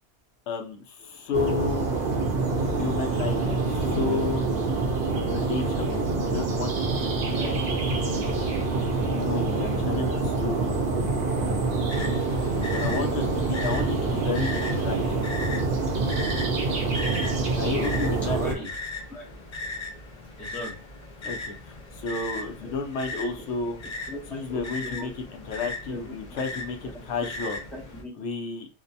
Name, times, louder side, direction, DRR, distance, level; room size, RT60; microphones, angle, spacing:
voice 1, 0.5-1.9 2.8-4.4 5.2-7.6 9.0-10.7 12.6-15.2 17.6-18.4 21.2-23.8 24.3-27.6 28.2-28.7, left 4 dB, 75° left, 5 dB, 0.9 m, -32 dB
sound 1, 1.3-18.5, right 3 dB, 65° right, 0.7 m, -26 dB
sound 2, 11.9-28.0, left 2 dB, 45° left, 0.6 m, -38 dB
voice 2, 18.2-18.7 19.1-19.3 20.4-20.8 22.6-22.7 24.1-25.1 25.9-26.0 26.3-26.4 26.8-26.9 27.2-27.3 27.7-28.1, equal, ahead, -1 dB, 0.5 m, -38 dB
2.5 x 2.0 x 2.6 m, 0.36 s
omnidirectional pair, 1.2 m